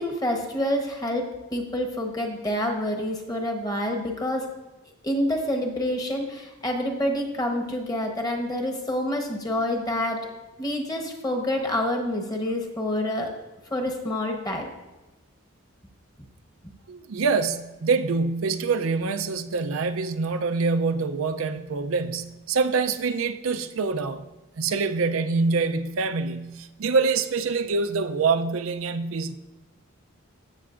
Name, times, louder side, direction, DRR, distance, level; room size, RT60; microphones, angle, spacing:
voice 1, 0.0-4.5 5.0-10.2 10.6-13.3 13.7-14.7, left 1 dB, 20° left, 2 dB, 1.0 m, -27 dB
voice 2, 16.9-24.3 24.6-29.4, right 4 dB, 90° right, 9 dB, 0.5 m, -25 dB
14.5 x 6.9 x 2.5 m, 1.1 s
head